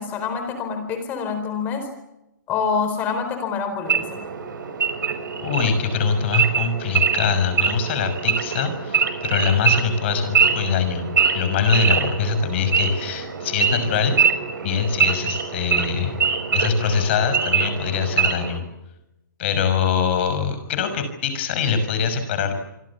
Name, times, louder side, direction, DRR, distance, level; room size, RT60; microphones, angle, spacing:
voice 1, 0.0-1.9 2.5-4.2, left 5 dB, 15° left, 7 dB, 4.5 m, -26 dB
Wild animals / Idling, 3.8-18.6, right 6 dB, 75° right, 6.0 m, -23 dB
voice 2, 5.4-11.1 11.3-14.2 14.6-16.2 16.5-18.6 19.4-22.5, left 6 dB, 35° left, 9 dB, 6.0 m, -23 dB
28.5 x 24.0 x 7.2 m, 0.88 s
hypercardioid pair, 175°, 11 cm